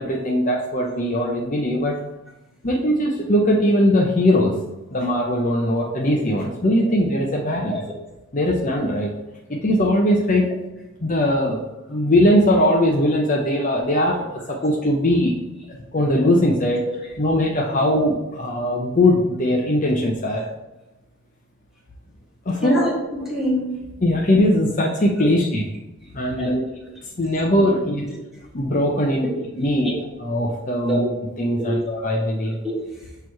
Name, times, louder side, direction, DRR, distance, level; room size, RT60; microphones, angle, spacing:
voice 1, 0.0-1.9 2.6-4.5 4.9-7.8 8.3-9.1 9.5-10.5 11.0-11.6 11.9-15.4 15.7-16.8 17.2-20.5 22.5-22.9 24.0-25.6 26.1-26.5 27.2-28.0 28.5-29.3 29.5-31.1 31.4-32.6, left 1 dB, 35° left, -1 dB, 0.7 m, -20 dB
voice 2, 22.6-23.8 25.2-25.3 26.4-27.0 28.3-28.4 29.2-29.9 30.8-31.0 31.4-31.8 32.6-33.0, equal, ahead, -5 dB, 1.7 m, -28 dB
6.6 x 3.1 x 5.5 m, 0.97 s
head